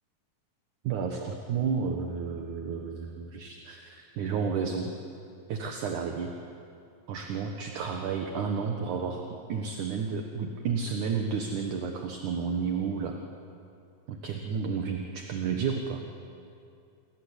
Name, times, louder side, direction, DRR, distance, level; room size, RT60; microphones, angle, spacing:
voice 1, 0.8-4.9 5.5-6.3 7.1-13.2 14.1-16.0, right 6 dB, 65° right, 3 dB, 2.7 m, -31 dB
28.0 x 22.5 x 8.3 m, 2.5 s
omnidirectional pair, 4.1 m